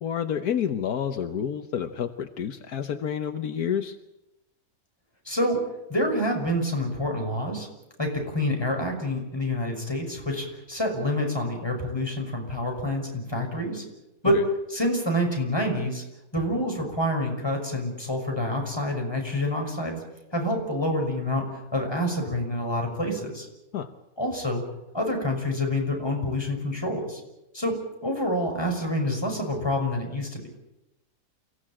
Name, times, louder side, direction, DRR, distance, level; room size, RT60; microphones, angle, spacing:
voice 1, 0.0-4.0 14.3-14.4 23.7-23.9, left 8 dB, 75° left, 8 dB, 1.6 m, -29 dB
voice 2, 5.3-5.6 5.9-7.7 8.0-13.8 14.2-14.4 14.7-16.0 16.3-20.0 20.3-21.4 21.7-23.5 24.2-24.6 24.9-27.2 27.5-30.5, left 1 dB, 15° left, 2 dB, 6.0 m, -27 dB
28.5 x 16.5 x 8.9 m, 0.95 s
omnidirectional pair, 1.6 m